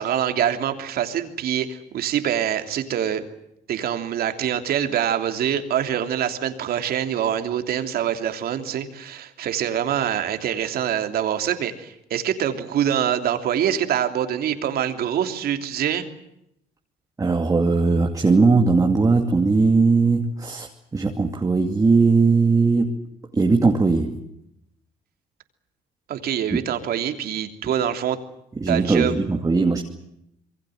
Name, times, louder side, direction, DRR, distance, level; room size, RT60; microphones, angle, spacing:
voice 1, 0.0-3.3 3.7-16.1 26.1-28.2 28.7-29.2, right 9 dB, 65° right, 7 dB, 3.1 m, -25 dB
voice 2, 17.2-23.0 23.3-24.2 26.5-26.6 28.6-29.8, right 4 dB, 20° right, 2 dB, 2.5 m, -19 dB
26.5 x 22.5 x 7.9 m, 0.79 s
cardioid pair, 110°, 17 cm